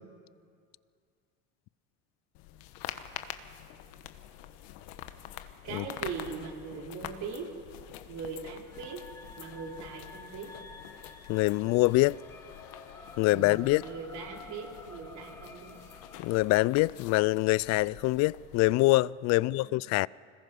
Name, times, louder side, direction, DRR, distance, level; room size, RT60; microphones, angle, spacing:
sound 1, 2.3-18.7, left 12 dB, 70° left, 1.3 m, -46 dB
voice 1, 5.6-7.5 8.1-9.0 9.4-10.5 13.3-15.8 19.3-19.7, right 5 dB, 55° right, 4.1 m, -40 dB
sound 2, 8.6-16.8, left 2 dB, 10° left, 3.0 m, -51 dB
voice 2, 11.3-12.2 13.2-13.8 16.2-20.1, left 20 dB, 55° left, 0.4 m, -25 dB
25.5 x 21.0 x 5.5 m
supercardioid pair, 100°, 34 cm